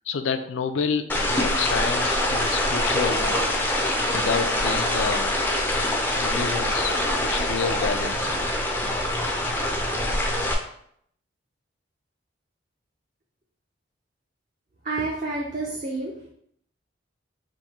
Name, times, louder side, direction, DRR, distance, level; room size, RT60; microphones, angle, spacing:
voice 1, 0.1-3.4 4.1-5.3 6.1-8.4, left 5 dB, 75° left, 9 dB, 0.4 m, -29 dB
sound 1, 1.1-10.5, left 1 dB, 10° left, 0.4 m, -24 dB
voice 2, 14.8-16.3, right 3 dB, 40° right, -3 dB, 0.6 m, -29 dB
3.6 x 2.6 x 4.2 m, 0.68 s
head